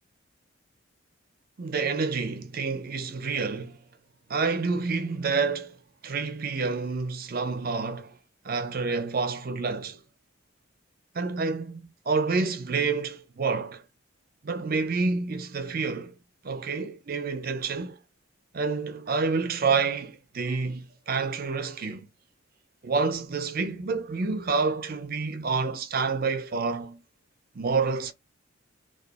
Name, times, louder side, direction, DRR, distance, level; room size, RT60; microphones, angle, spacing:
voice 1, 1.6-3.8 4.3-5.8 6.0-8.2 8.4-10.0 11.1-13.8 14.4-16.1 16.4-18.0 18.5-22.1 22.8-27.0 27.5-28.1, right 4 dB, 45° right, 0.5 m, -28 dB
2.4 x 2.3 x 2.5 m
head